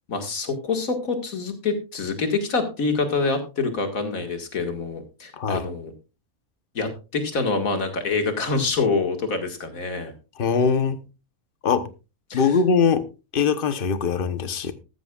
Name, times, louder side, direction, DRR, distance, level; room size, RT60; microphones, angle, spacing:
voice 1, 0.1-5.9 6.7-10.1 12.3-12.5, left 4 dB, 70° left, 2.3 m, -26 dB
voice 2, 10.4-11.0 11.6-11.9 12.3-13.1 13.3-14.7, left 5 dB, 40° left, 1.0 m, -21 dB
13.5 x 13.5 x 2.4 m
omnidirectional pair, 1.5 m